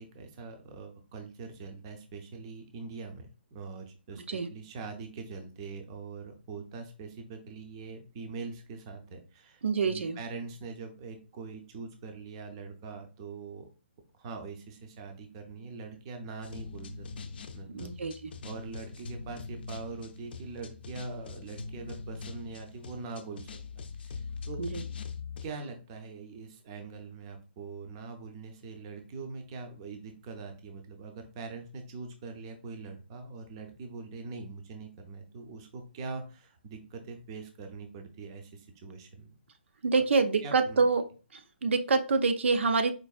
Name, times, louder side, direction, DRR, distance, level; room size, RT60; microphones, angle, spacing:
voice 1, 0.0-13.7 14.1-17.1 17.5-17.9 18.4-23.5 24.0-24.6 25.4-39.4 40.0-40.1 40.4-40.9, right 4 dB, 25° right, 5 dB, 0.5 m, -43 dB
voice 2, 4.1-4.5 9.6-10.2 17.7-18.3 24.6-24.8 39.8-41.0 41.3-42.9, right 4 dB, 80° right, 7 dB, 0.5 m, -26 dB
sound 1, 16.4-25.5, left 4 dB, 55° left, 0.5 m, -42 dB
4.5 x 2.5 x 2.3 m, 0.35 s
hypercardioid pair, 165°, 6 cm